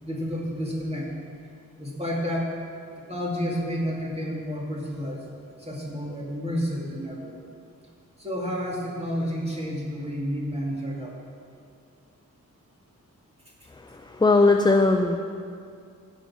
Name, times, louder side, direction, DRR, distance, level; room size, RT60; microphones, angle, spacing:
voice 1, 0.0-1.1 1.8-2.5 3.1-5.3 5.6-7.3 8.2-11.2 13.6-13.7, equal, 20° right, -3 dB, 2.3 m, -30 dB
voice 2, 13.7-15.2, left 3 dB, 15° left, 5 dB, 0.4 m, -20 dB
15.5 x 5.4 x 6.1 m, 2.3 s
wide cardioid pair, 110°, 33 cm